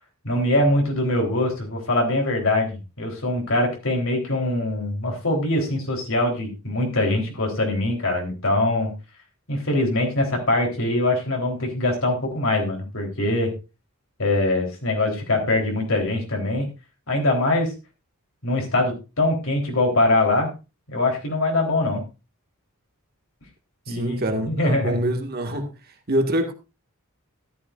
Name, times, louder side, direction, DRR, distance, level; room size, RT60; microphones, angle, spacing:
voice 1, 0.2-8.9 9.5-13.5 14.2-16.7 17.1-17.7 18.4-20.5 20.9-22.0 23.9-24.1 24.4-25.0, left 2 dB, 65° left, 3.8 m, -23 dB
voice 2, 23.9-25.7 26.1-26.5, right 1 dB, 45° right, 1.9 m, -25 dB
13.5 x 12.5 x 2.5 m
head